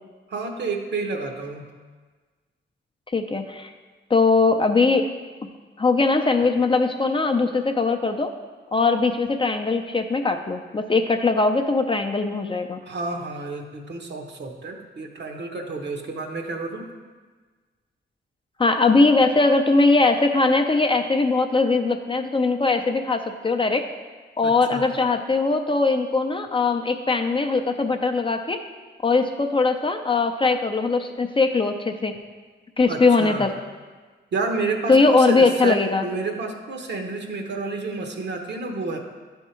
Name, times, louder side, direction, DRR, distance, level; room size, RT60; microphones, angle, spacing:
voice 1, 0.3-1.7 12.8-16.9 24.4-24.9 32.9-33.5 34.3-39.0, right 3 dB, 60° right, 3 dB, 1.0 m, -30 dB
voice 2, 3.1-3.7 4.1-5.0 5.8-8.3 8.7-12.8 18.6-23.9 24.4-28.6 29.0-32.1 32.8-33.5 34.9-36.1, left 3 dB, 25° left, 5 dB, 0.5 m, -20 dB
10.5 x 3.6 x 4.4 m, 1.4 s
cardioid pair, 80°, 20 cm